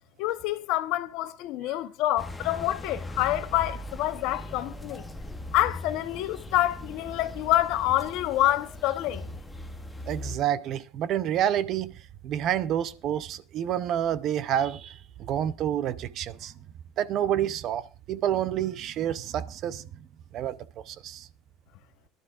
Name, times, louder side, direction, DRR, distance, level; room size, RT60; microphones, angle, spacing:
voice 1, 0.2-5.0 5.5-9.3, left 14 dB, 60° left, 1.0 m, -27 dB
sound 1, 2.2-10.4, left 1 dB, 10° left, 0.9 m, -40 dB
voice 2, 10.1-16.5 17.0-19.8 20.3-20.6 20.9-21.3, right 10 dB, 40° right, 0.6 m, -28 dB
23.0 x 12.0 x 2.4 m
cardioid pair, 160°, 0 cm